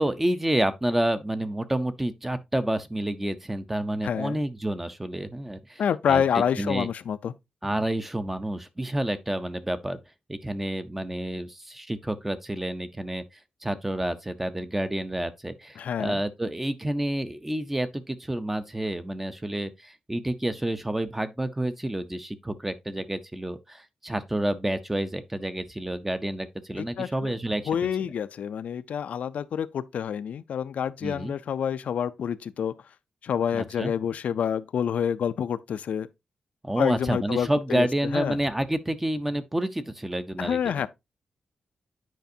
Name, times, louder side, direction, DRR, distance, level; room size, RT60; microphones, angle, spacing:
voice 1, 0.0-5.8 6.1-6.2 6.6-6.9 7.6-10.0 10.3-13.2 13.6-27.6 31.0-31.3 33.5-33.9 36.6-40.6, right 1 dB, 10° right, 0.5 m, -29 dB
voice 2, 4.0-4.4 5.8-7.3 15.8-16.2 26.8-27.3 27.7-32.7 33.2-36.1 36.8-37.9 38.1-38.4 40.4-40.9, left 8 dB, 80° left, 0.4 m, -28 dB
9.1 x 5.2 x 2.7 m
wide cardioid pair, 155°, 2 cm